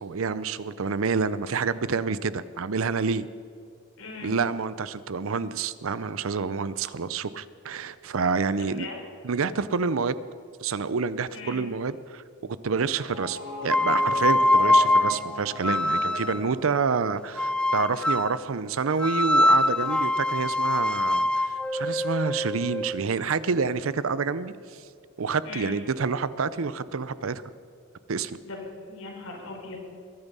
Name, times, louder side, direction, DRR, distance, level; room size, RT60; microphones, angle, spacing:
voice 1, 0.0-3.3 4.2-8.9 9.2-10.2 10.6-24.8 25.2-27.4 28.1-28.4, right 5 dB, 70° right, 16 dB, 0.6 m, -28 dB
voice 2, 4.0-4.4 8.5-9.0 11.3-11.6 25.4-25.8 28.4-29.8, left 3 dB, 80° left, 0 dB, 4.2 m, -39 dB
sound 1, 12.9-17.9, equal, 45° right, 4.8 m, -39 dB
sound 2, 13.6-16.5 17.4-18.4 19.0-23.0, left 1 dB, 5° left, 0.3 m, -23 dB
22.0 x 11.0 x 5.5 m, 2.3 s
head